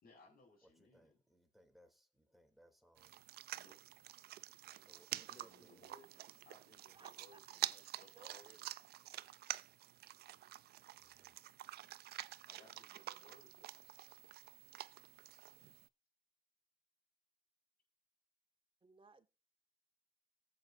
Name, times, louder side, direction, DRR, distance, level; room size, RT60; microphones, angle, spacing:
voice 1, 0.0-1.2 3.6-3.8 4.9-8.7 12.2-14.1, left 2 dB, 65° left, 5.1 m, -64 dB
voice 2, 0.6-3.3 4.6-5.9 11.0-11.4, equal, ahead, 2.6 m, -69 dB
sound 1, 3.0-15.9, right 14 dB, 80° right, 0.4 m, -48 dB
voice 3, 6.9-7.7 8.1-8.4 18.8-19.3, right 3 dB, 30° right, 1.5 m, -62 dB
18.0 x 7.8 x 2.5 m
supercardioid pair, 60°, 16 cm